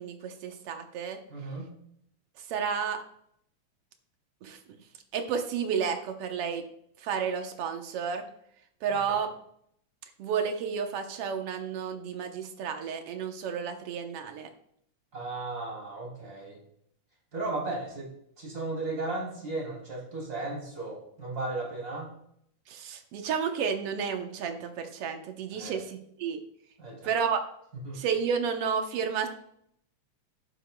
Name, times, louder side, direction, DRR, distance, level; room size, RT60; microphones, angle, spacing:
voice 1, 0.0-1.2 2.5-3.0 4.4-4.6 5.1-6.6 7.0-8.2 8.8-9.3 10.2-14.5 22.7-26.4 27.0-27.4 27.9-29.3, right 6 dB, 65° right, 5 dB, 1.7 m, -31 dB
voice 2, 1.3-1.8 9.1-9.2 15.1-16.6 17.3-18.1 18.4-22.1 25.5-25.8 26.8-27.1 27.8-28.0, right 2 dB, 30° right, -3 dB, 3.9 m, -35 dB
11.5 x 10.0 x 2.2 m, 0.71 s
omnidirectional pair, 3.4 m